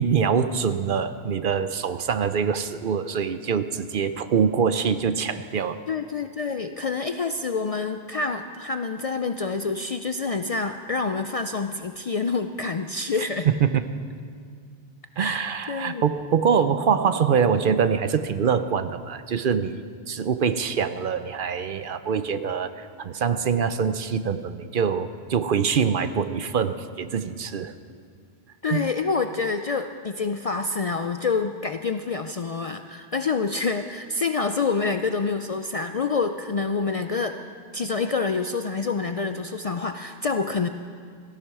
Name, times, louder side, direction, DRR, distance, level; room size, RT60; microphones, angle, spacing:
voice 1, 0.0-5.8 13.5-13.8 15.2-27.7 28.7-28.8, right 6 dB, 60° right, 11 dB, 0.7 m, -24 dB
voice 2, 5.9-13.5 15.2-16.0 28.6-37.4 37.7-40.7, left 4 dB, 50° left, 8 dB, 0.4 m, -27 dB
17.5 x 14.0 x 4.8 m, 2.1 s
omnidirectional pair, 1.1 m